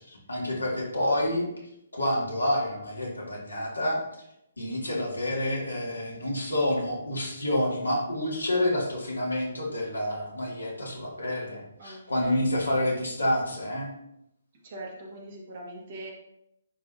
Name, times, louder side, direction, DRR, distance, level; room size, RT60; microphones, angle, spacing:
voice 1, 0.0-1.5 1.9-4.0 4.6-13.9, left 1 dB, 75° left, -2 dB, 2.0 m, -28 dB
voice 2, 11.8-12.4 14.6-16.1, right 1 dB, 45° right, -1 dB, 1.8 m, -42 dB
9.9 x 3.5 x 2.7 m, 0.79 s
figure-of-eight pair, 135°, 0 cm